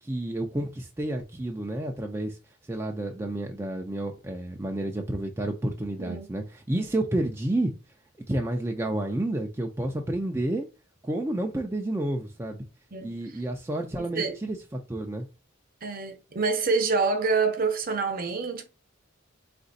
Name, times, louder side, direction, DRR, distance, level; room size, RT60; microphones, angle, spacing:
voice 1, 0.0-2.4 2.6-7.7 8.3-10.7 11.0-12.6 13.0-14.6 14.9-15.3, right 1 dB, 15° right, 0.4 m, -30 dB
voice 2, 14.0-14.4 15.8-18.7, right 4 dB, 45° right, 0.7 m, -27 dB
4.0 x 2.5 x 3.9 m
head